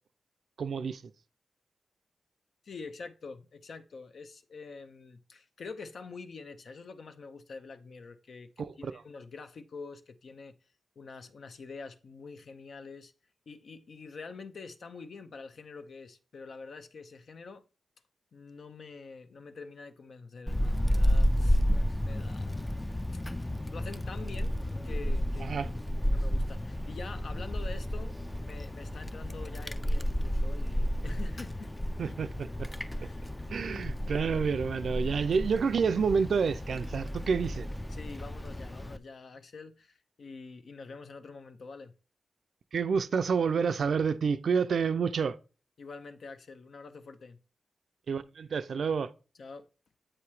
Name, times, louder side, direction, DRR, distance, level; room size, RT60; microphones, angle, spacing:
voice 1, 0.6-1.0 8.6-9.0 25.4-25.7 32.0-32.7 33.5-37.7 42.7-45.4 48.1-49.1, right 5 dB, 70° right, 0.4 m, -29 dB
voice 2, 2.6-10.6 11.0-13.1 13.5-17.6 18.3-21.6 22.0-23.0 23.7-24.5 24.8-25.7 26.1-31.7 32.0-32.1 32.9-33.3 33.7-34.2 37.9-41.9 45.8-47.4 49.4-49.7, left 4 dB, 65° left, 0.6 m, -46 dB
Wind, 20.5-39.0, equal, 15° left, 0.3 m, -31 dB
7.5 x 2.9 x 4.7 m
cardioid pair, 65°, 0 cm